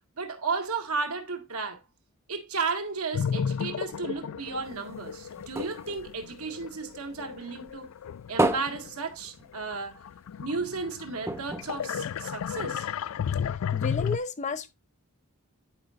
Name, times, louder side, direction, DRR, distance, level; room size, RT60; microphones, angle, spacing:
voice 1, 0.2-1.8 2.3-7.9 8.3-10.0 10.4-12.9, right 4 dB, 80° right, 1.9 m, -34 dB
sound 1, 3.1-9.1 9.5-14.2, left 8 dB, 65° left, 0.3 m, -33 dB
sound 2, 4.6-7.3 7.7-9.9 10.2-10.3 10.6-10.8 11.2-12.7 13.4-13.5, right 2 dB, 10° right, 0.6 m, -33 dB
voice 2, 13.5-14.7, left 3 dB, 35° left, 0.6 m, -33 dB
11.5 x 5.4 x 2.5 m
head